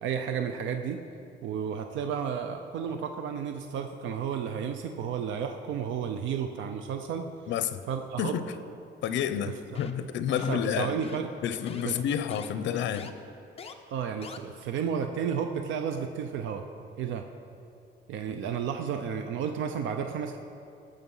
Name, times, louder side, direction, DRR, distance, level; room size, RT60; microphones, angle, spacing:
voice 1, 0.0-1.0 1.4-7.3 7.9-8.3 9.7-9.8 10.3-11.3 11.8-12.0 13.9-16.6 17.0-17.2 18.1-20.4, right 7 dB, 85° right, 6 dB, 0.7 m, -32 dB
voice 2, 7.5-7.8 8.2-8.4 9.0-10.9 11.4-13.1, left 9 dB, 75° left, 12 dB, 0.7 m, -29 dB
sound 1, 9.7-10.1 10.4-10.7 11.0-11.3 11.7-11.8 12.3-12.5 12.9-13.1 13.6-13.7 14.2-14.4, left 5 dB, 30° left, 0.7 m, -42 dB
19.5 x 6.6 x 5.6 m, 2.6 s
cardioid pair, 155°, 19 cm